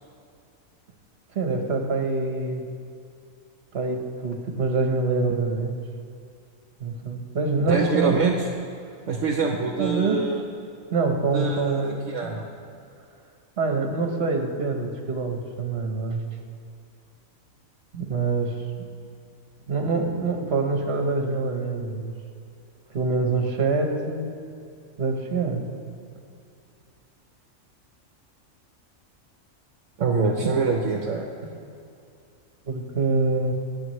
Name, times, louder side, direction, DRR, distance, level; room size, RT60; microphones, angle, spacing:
voice 1, 1.3-2.6 3.7-5.8 6.8-8.2 9.8-10.3 10.9-12.3 13.6-16.2 17.9-18.9 19.7-22.1 22.9-24.3 25.0-25.6 32.7-33.5, right 3 dB, 50° right, 3 dB, 1.5 m, -25 dB
voice 2, 7.7-8.5 9.1-10.4 11.3-12.4 30.0-31.3, right 4 dB, 65° right, 1 dB, 1.2 m, -25 dB
21.5 x 7.3 x 3.2 m, 2.5 s
omnidirectional pair, 1.4 m